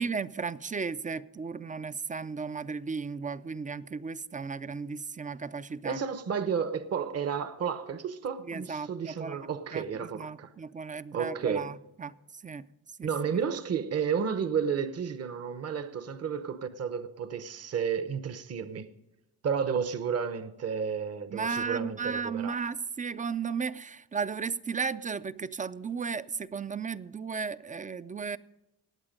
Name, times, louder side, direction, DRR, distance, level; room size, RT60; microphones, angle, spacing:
voice 1, 0.0-6.0 8.4-9.4 9.7-9.9 10.1-12.7 13.0-13.1 21.3-28.4, right 5 dB, 20° right, 0.3 m, -35 dB
voice 2, 5.8-10.5 11.1-11.7 13.0-18.9 19.4-22.6, right 7 dB, 40° right, 0.8 m, -32 dB
19.0 x 8.1 x 5.2 m
cardioid pair, 125°, 39 cm